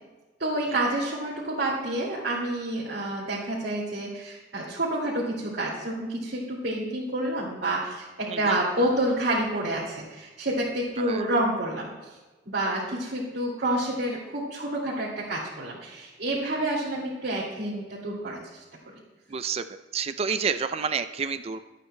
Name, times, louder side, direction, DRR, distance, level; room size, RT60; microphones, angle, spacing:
voice 1, 0.4-11.9 12.5-18.6, right 1 dB, 65° right, -6 dB, 2.2 m, -28 dB
voice 2, 19.3-19.6 19.9-21.7, right 6 dB, 35° right, 11 dB, 0.3 m, -29 dB
23.0 x 8.6 x 2.2 m, 1.2 s
head